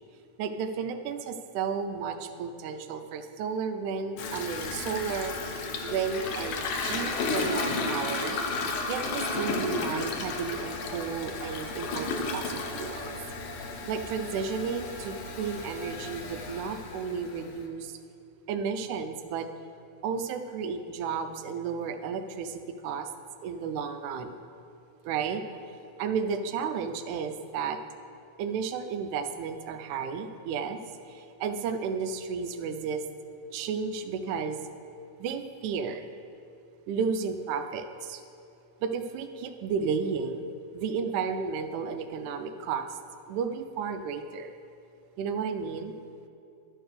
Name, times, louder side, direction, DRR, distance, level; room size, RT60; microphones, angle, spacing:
voice 1, 0.4-5.4 5.8-8.4 8.9-13.2 13.9-17.9 18.5-19.5 20.0-23.1 23.4-24.4 25.1-25.4 26.0-27.8 28.4-30.8 31.1-33.0 33.5-34.6 35.2-36.1 36.9-38.2 38.8-43.0 43.3-44.5 45.2-46.0, right 6 dB, 85° right, 8 dB, 2.0 m, -33 dB
Toilet flush, 4.2-17.6, left 3 dB, 80° left, 1.2 m, -33 dB
11.5 x 4.5 x 6.5 m, 2.6 s
omnidirectional pair, 3.4 m